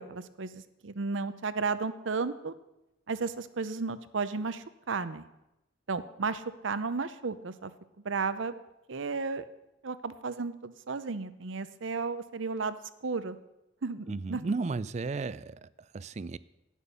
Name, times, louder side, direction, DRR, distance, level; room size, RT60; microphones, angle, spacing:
voice 1, 0.0-2.5 3.1-5.3 5.9-7.7 8.0-8.5 8.9-9.4 9.8-12.8 13.0-13.4 13.8-14.4, right 4 dB, 80° right, 0.7 m, -33 dB
voice 2, 14.1-16.4, right 3 dB, 35° right, 0.3 m, -34 dB
10.5 x 9.1 x 6.8 m
head